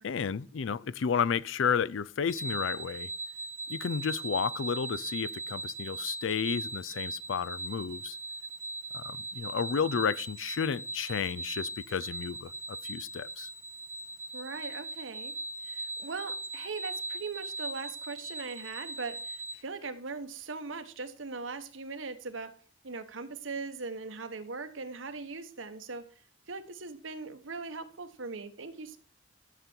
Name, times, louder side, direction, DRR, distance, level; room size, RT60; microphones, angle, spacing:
voice 1, 0.0-3.1 3.7-8.2 8.9-12.5 12.8-13.5, left 6 dB, 80° left, 0.5 m, -32 dB
sound 1, 2.3-19.5, right 2 dB, 15° left, 1.3 m, -39 dB
voice 2, 14.3-15.3 15.6-22.5 22.8-26.1 26.5-29.0, right 4 dB, 85° right, 1.2 m, -40 dB
13.0 x 6.9 x 4.5 m
head